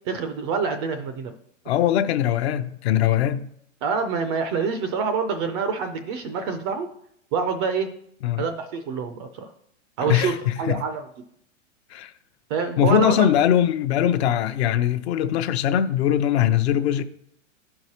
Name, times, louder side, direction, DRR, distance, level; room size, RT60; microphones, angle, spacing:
voice 1, 0.1-1.4 3.8-6.9 7.3-7.9 8.4-9.5 10.0-11.1 12.5-13.3, right 5 dB, 25° right, 0.3 m, -26 dB
voice 2, 1.7-3.5 8.2-8.4 10.0-10.8 11.9-12.1 12.8-17.0, left 10 dB, 55° left, 0.7 m, -21 dB
12.5 x 4.8 x 2.8 m
hypercardioid pair, 125°, 38 cm